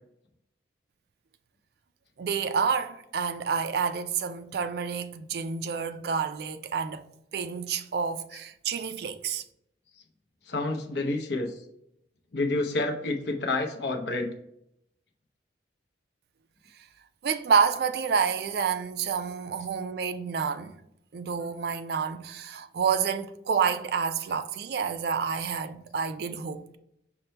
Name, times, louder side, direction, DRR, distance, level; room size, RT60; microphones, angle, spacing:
voice 1, 2.2-7.1 7.3-9.4 17.2-20.8 21.1-26.7, right 6 dB, 55° right, 0.3 m, -29 dB
voice 2, 10.5-11.6 12.3-14.3, left 2 dB, 65° left, 0.6 m, -29 dB
5.3 x 2.2 x 4.3 m
head